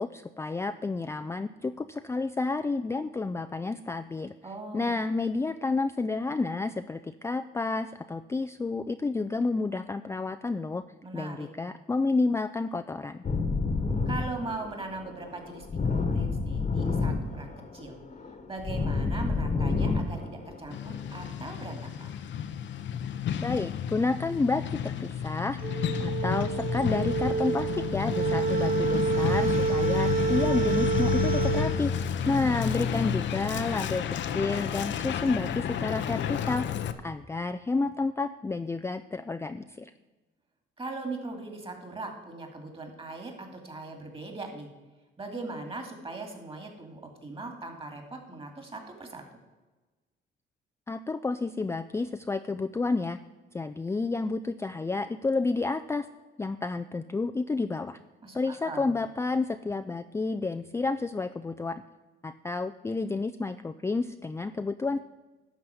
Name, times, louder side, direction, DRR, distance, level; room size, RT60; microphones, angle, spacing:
voice 1, 0.0-4.3 4.7-10.8 11.1-13.2 23.4-31.9 32.3-34.0 34.3-36.7 37.0-39.9 50.9-53.2 53.5-56.1 56.4-58.0 58.3-61.8 62.2-65.0, left 3 dB, 15° left, 9 dB, 0.4 m, -30 dB
voice 2, 4.4-4.9 11.0-11.7 14.1-17.5 17.7-18.0 18.5-22.1 32.2-32.9 40.8-44.7 45.2-49.2 58.2-58.9, right 3 dB, 25° right, 4 dB, 2.4 m, -40 dB
sound 1, 13.2-21.3, left 4 dB, 40° left, 1.3 m, -29 dB
Truck, 20.7-36.9, left 9 dB, 70° left, 0.7 m, -31 dB
sound 2, 25.6-31.7, right 6 dB, 45° right, 2.1 m, -28 dB
11.5 x 4.2 x 7.8 m, 1.2 s
cardioid pair, 90°, 20 cm